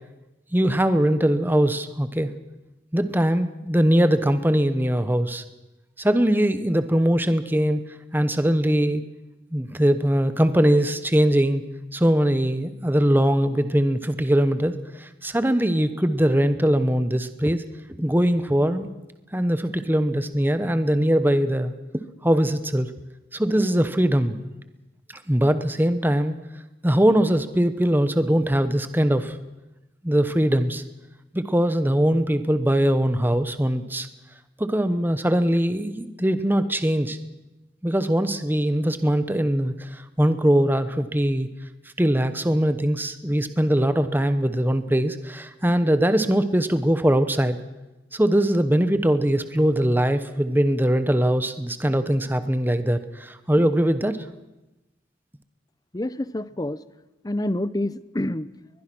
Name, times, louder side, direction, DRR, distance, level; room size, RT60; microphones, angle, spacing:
voice 1, 0.5-2.3 2.9-5.4 6.0-7.8 8.1-9.0 9.5-11.6 11.9-17.6 18.0-18.9 19.3-21.7 22.2-22.9 23.3-24.4 25.3-26.3 26.8-29.4 30.0-30.8 31.3-34.1 34.6-37.2 37.8-41.5 42.0-47.6 48.1-54.2, equal, 10° right, 11 dB, 1.0 m, -21 dB
voice 2, 55.9-56.8 57.2-58.5, left 1 dB, 20° left, 16 dB, 0.7 m, -27 dB
22.0 x 21.0 x 6.2 m, 1.0 s
head